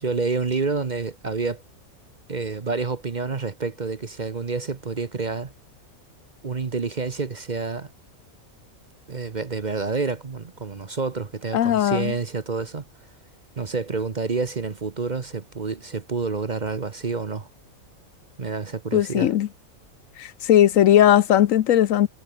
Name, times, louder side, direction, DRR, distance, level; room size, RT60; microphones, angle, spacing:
voice 1, 0.0-1.6 2.3-5.5 6.4-7.9 9.1-12.8 13.6-17.5 18.4-19.3, right 4 dB, 35° right, 1.0 m, -28 dB
voice 2, 11.5-12.1 18.9-19.5 20.2-22.1, left 11 dB, 70° left, 1.1 m, -18 dB
omnidirectional pair, 1.5 m